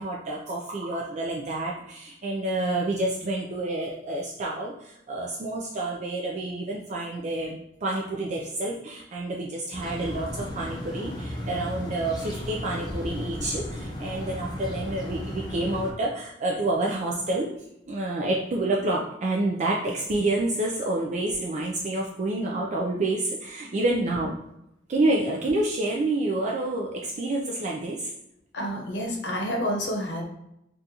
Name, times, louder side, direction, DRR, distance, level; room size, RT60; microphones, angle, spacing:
voice 1, 0.0-17.5 17.9-24.4 24.9-28.1, right 2 dB, 40° right, -2 dB, 0.4 m, -28 dB
sound 1, 9.7-15.9, left 1 dB, 25° left, 0.5 m, -35 dB
voice 2, 28.5-30.2, equal, 75° left, 0 dB, 0.8 m, -29 dB
3.8 x 2.4 x 2.7 m, 0.82 s
head